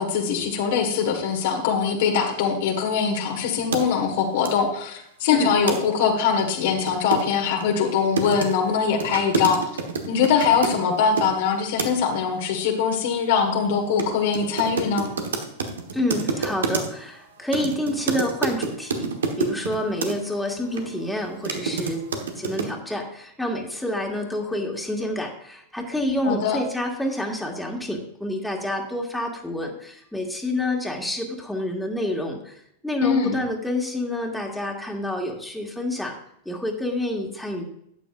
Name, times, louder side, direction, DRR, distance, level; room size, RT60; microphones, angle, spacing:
voice 1, 0.0-9.6 10.1-15.1 26.2-26.6 33.0-33.4, left 6 dB, 60° left, 2 dB, 1.6 m, -22 dB
sound 1, 3.7-3.8 4.4-4.5 5.7-5.8 6.0-6.1 6.4-11.3 11.8-12.1 14.0-14.1 14.3-17.1 17.5-20.1 20.7-20.8 21.2-22.7, right 4 dB, 75° right, 1.3 m, -28 dB
voice 2, 15.9-19.1 19.4-22.0 22.3-36.1 36.5-37.6, left 1 dB, 5° left, 0 dB, 2.0 m, -28 dB
12.5 x 9.0 x 2.5 m, 0.74 s
figure-of-eight pair, 95°, 0 cm